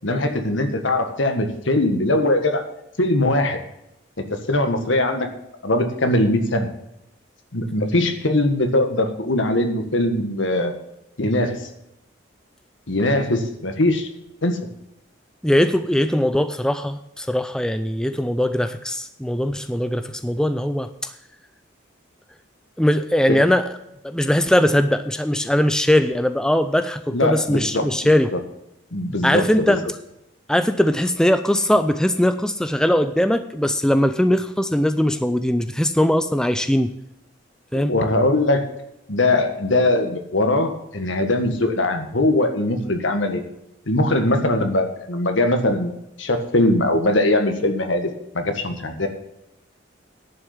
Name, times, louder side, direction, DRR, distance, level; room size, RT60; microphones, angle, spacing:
voice 1, 0.0-2.6 3.0-3.6 4.2-5.3 5.6-6.7 7.5-10.7 11.2-11.7 12.9-14.1 14.4-14.6 23.3-23.4 27.1-27.9 28.3-28.4 28.9-29.8 37.7-38.6 39.1-43.4 43.9-45.9 46.2-49.1, left 1 dB, 80° left, 6 dB, 1.6 m, -21 dB
voice 2, 15.4-21.1 22.8-23.7 24.0-28.3 29.2-29.9 30.5-36.9 37.7-37.9, left 1 dB, 5° left, 10 dB, 0.4 m, -20 dB
11.0 x 6.6 x 7.2 m, 0.83 s
head